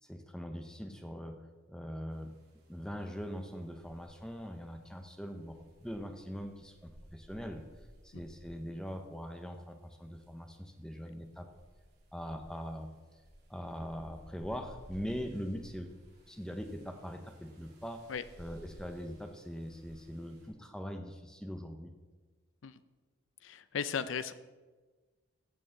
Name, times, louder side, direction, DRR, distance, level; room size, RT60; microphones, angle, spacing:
voice 1, 0.0-1.4 1.7-2.3 2.7-7.6 8.0-11.5 12.1-12.9 13.5-15.9 16.3-18.1 18.4-21.9, equal, 5° left, 5 dB, 0.7 m, -42 dB
sound 1, 2.1-20.5, equal, 50° right, 2.6 m, -58 dB
voice 2, 23.4-24.3, left 6 dB, 75° left, 14 dB, 0.5 m, -36 dB
15.0 x 6.6 x 3.8 m, 1.3 s
head